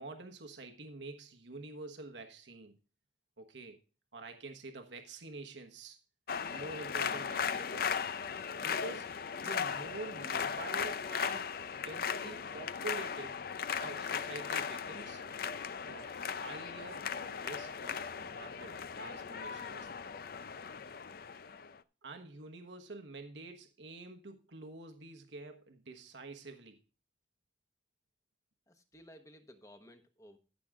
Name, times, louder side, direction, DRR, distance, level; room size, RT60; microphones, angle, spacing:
voice 1, 0.0-2.8 3.4-3.8 4.1-6.0 6.5-7.9 8.6-9.1 9.4-11.5 11.8-13.4 13.8-15.2 15.8-20.1 22.0-26.8, right 3 dB, 85° right, 5 dB, 1.2 m, -47 dB
sound 1, 6.3-21.8, left 6 dB, 55° left, 0.5 m, -37 dB
voice 2, 28.7-30.4, equal, 20° left, 6 dB, 1.2 m, -56 dB
14.5 x 6.2 x 3.6 m, 0.34 s
head